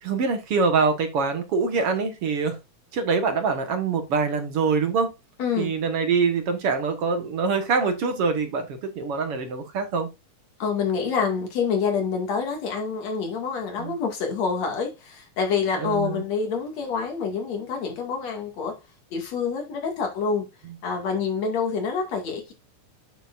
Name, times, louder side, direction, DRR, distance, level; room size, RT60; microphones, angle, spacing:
voice 1, 0.0-2.6 2.9-5.1 5.6-10.1 13.8-13.9 15.8-16.2, right 5 dB, 55° right, 2.1 m, -24 dB
voice 2, 5.4-5.7 10.6-18.8 19.1-20.5 20.8-22.5, left 5 dB, 60° left, 3.4 m, -27 dB
9.5 x 6.9 x 2.6 m
omnidirectional pair, 3.6 m